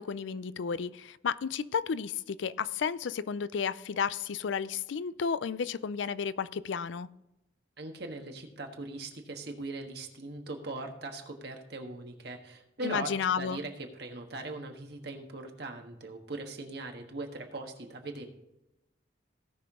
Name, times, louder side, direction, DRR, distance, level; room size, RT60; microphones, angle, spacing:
voice 1, 0.0-7.1 12.8-13.6, left 6 dB, 80° left, 17 dB, 0.4 m, -32 dB
voice 2, 7.8-18.3, right 2 dB, 60° right, 4 dB, 1.4 m, -40 dB
17.0 x 5.9 x 3.6 m, 0.92 s
head